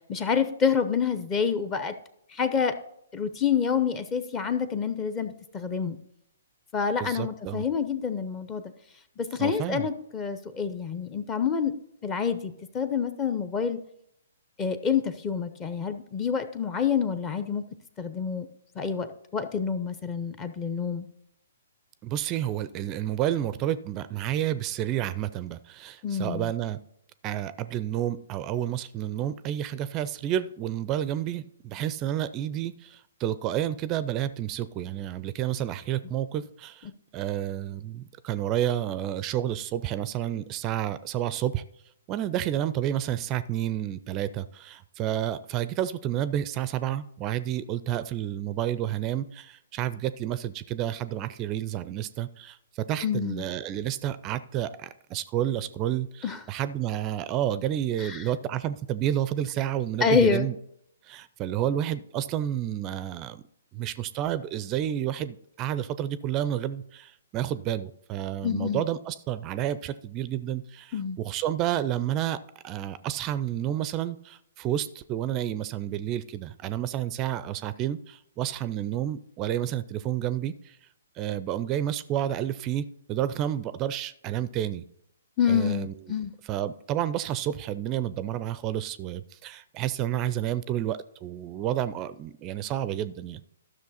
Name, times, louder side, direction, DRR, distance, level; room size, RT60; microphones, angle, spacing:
voice 1, 0.1-1.9 2.3-2.8 3.1-6.0 6.7-8.6 9.2-11.7 12.0-13.8 14.6-17.6 18.0-18.5 18.8-19.1 19.3-21.1 26.0-26.5 53.0-53.4 56.2-56.4 58.0-58.2 60.0-60.5 68.4-68.8 70.9-71.2 85.4-86.3, left 6 dB, 20° left, 10 dB, 0.7 m, -27 dB
voice 2, 7.0-7.6 9.4-9.9 22.0-26.8 27.2-41.6 42.1-60.5 61.0-63.4 63.7-72.4 72.6-80.8 81.2-84.8 85.5-85.9 86.4-93.4, right 11 dB, 25° right, 15 dB, 0.4 m, -30 dB
13.0 x 6.2 x 4.1 m, 0.73 s
figure-of-eight pair, 125°, 0 cm